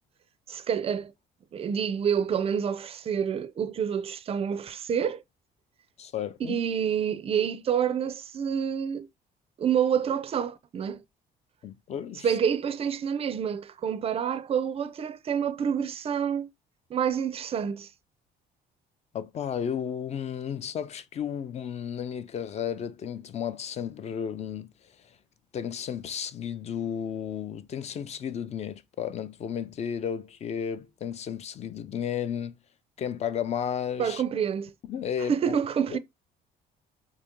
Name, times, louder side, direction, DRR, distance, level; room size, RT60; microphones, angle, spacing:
voice 1, 0.5-1.1 1.5-5.2 6.4-9.1 9.6-11.0 12.2-16.5 16.9-17.9 34.0-34.7 35.2-36.0, right 8 dB, 35° right, 0.4 m, -28 dB
voice 2, 6.0-6.6 11.6-12.3 19.1-24.7 25.5-32.5 33.0-34.2 34.9-35.5 35.9-36.0, left 8 dB, 40° left, 0.4 m, -33 dB
3.0 x 2.8 x 3.5 m
cardioid pair, 110°, 17 cm